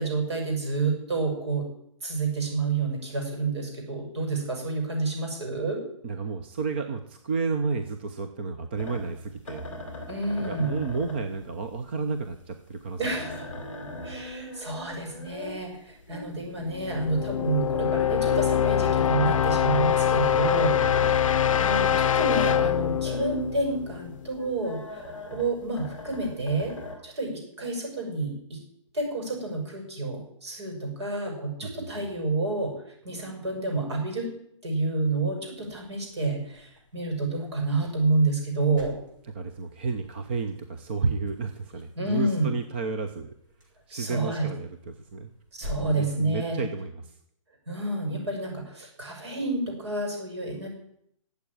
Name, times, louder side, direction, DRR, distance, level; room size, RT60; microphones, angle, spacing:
voice 1, 0.0-1.7 2.0-5.8 10.1-10.7 13.0-13.5 14.0-20.8 21.3-26.7 27.0-28.6 28.9-32.7 33.0-34.3 34.6-39.0 42.0-42.5 43.9-44.5 45.5-46.7 47.7-50.7, right 3 dB, 55° right, 2 dB, 7.0 m, -29 dB
voice 2, 6.0-9.7 10.4-13.0 20.8-21.3 31.6-32.1 39.2-43.3 43.9-45.3 45.7-47.2, right 4 dB, 20° right, 7 dB, 0.6 m, -32 dB
sound 1, 8.7-22.4 22.7-26.9, left 2 dB, 10° left, 4.3 m, -41 dB
sound 2, 16.7-24.5, left 9 dB, 80° left, 0.5 m, -24 dB
sound 3, 35.5-46.6, equal, 40° right, 5.7 m, -48 dB
13.5 x 8.1 x 10.0 m, 0.72 s
hypercardioid pair, 180°, 17 cm